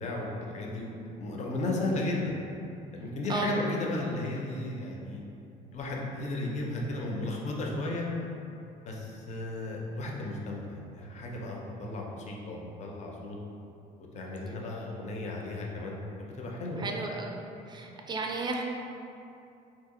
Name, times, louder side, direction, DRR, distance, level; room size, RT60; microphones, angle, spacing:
voice 1, 0.0-2.4 2.9-5.2 5.7-8.1 8.9-13.4 14.1-16.9, left 2 dB, 45° left, -1 dB, 0.5 m, -34 dB
voice 2, 16.8-17.3 17.7-18.6, right 3 dB, 25° right, 1 dB, 0.4 m, -33 dB
2.8 x 2.5 x 3.7 m, 2.6 s
cardioid pair, 110°, 17 cm